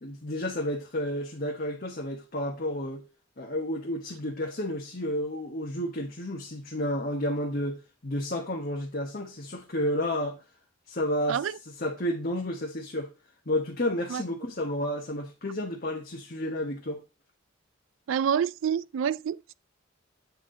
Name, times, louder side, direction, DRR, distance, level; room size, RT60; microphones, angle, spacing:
voice 1, 0.0-3.0 3.4-10.4 10.9-13.1 13.5-17.0, left 1 dB, 50° left, 1.2 m, -31 dB
voice 2, 18.1-19.5, right 8 dB, 80° right, 0.3 m, -27 dB
8.2 x 4.5 x 3.8 m
head